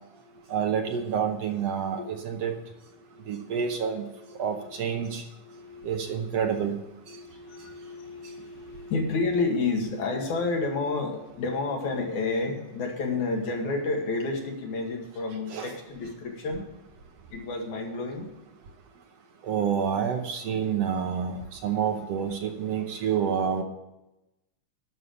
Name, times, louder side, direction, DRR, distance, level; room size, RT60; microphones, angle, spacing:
voice 1, 0.5-2.5 3.3-4.0 4.4-5.2 5.8-6.8 15.5-15.7 19.5-21.4 21.6-23.6, right 7 dB, 70° right, 1.8 m, -28 dB
voice 2, 3.0-3.5 5.0-5.1 5.5-6.4 7.1-16.7 17.3-18.3 23.0-23.1, left 3 dB, 75° left, 3.3 m, -31 dB
11.0 x 6.8 x 7.9 m
omnidirectional pair, 3.4 m